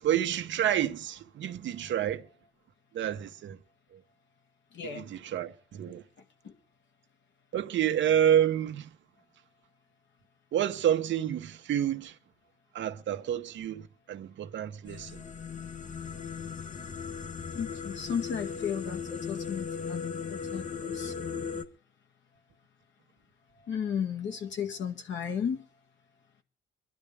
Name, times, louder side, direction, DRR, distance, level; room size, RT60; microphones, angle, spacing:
voice 1, 0.0-2.3 2.9-3.6 3.9-4.0 4.8-6.0 7.5-8.9 10.5-12.2 12.7-15.2, right 10 dB, 70° right, 1.1 m, -29 dB
voice 2, 4.7-5.1 6.4-6.5 17.5-21.5 23.7-25.6, left 7 dB, 70° left, 2.0 m, -35 dB
sound 1, 14.9-21.6, left 6 dB, 40° left, 1.1 m, -37 dB
22.5 x 11.5 x 3.5 m
cardioid pair, 90°, 20 cm